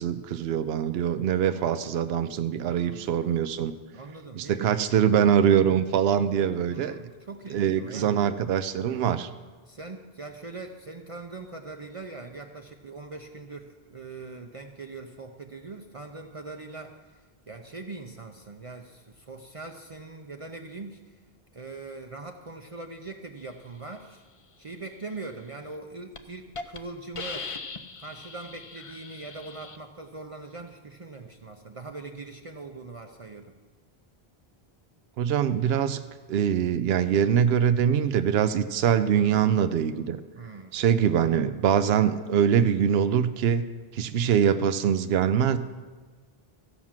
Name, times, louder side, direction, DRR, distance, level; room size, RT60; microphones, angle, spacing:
voice 1, 0.0-3.7 4.4-7.0 7.5-9.3 35.2-36.0 36.3-40.2 40.7-43.6 43.9-45.6, right 8 dB, 80° right, 11 dB, 0.8 m, -23 dB
voice 2, 2.6-3.1 3.9-4.8 6.7-8.1 9.7-21.0 21.5-24.2 24.6-27.5 28.0-33.5 40.3-40.8, right 3 dB, 40° right, 4 dB, 0.6 m, -41 dB
Hiss, 25.6-25.8 26.1-26.2 26.5-26.8 27.1-29.8, left 4 dB, 40° left, 0.6 m, -39 dB
14.5 x 6.1 x 7.3 m, 1.3 s
omnidirectional pair, 1.0 m